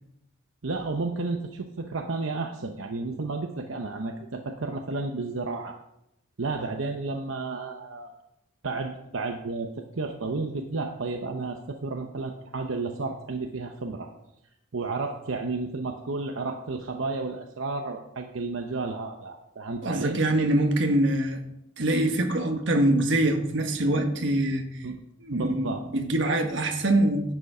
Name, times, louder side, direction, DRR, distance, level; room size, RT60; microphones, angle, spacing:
voice 1, 0.6-5.8 6.4-8.1 8.6-14.1 14.7-20.2 24.8-25.0 25.3-25.9, right 3 dB, 80° right, 4 dB, 0.8 m, -32 dB
voice 2, 19.8-21.4 21.8-24.8 25.2-27.3, right 1 dB, 65° right, 5 dB, 1.4 m, -24 dB
11.0 x 8.1 x 4.9 m, 0.84 s
head